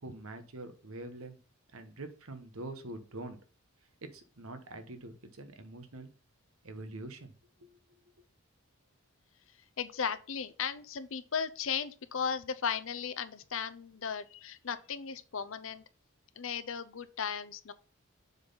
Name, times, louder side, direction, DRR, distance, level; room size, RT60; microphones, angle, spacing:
voice 1, 0.0-1.4 1.7-3.4 4.0-6.1 6.6-7.3 7.6-7.8, right 2 dB, 80° right, 1.1 m, -44 dB
voice 2, 9.8-15.8 16.4-17.7, left 6 dB, 70° left, 0.7 m, -36 dB
7.1 x 4.0 x 5.6 m
head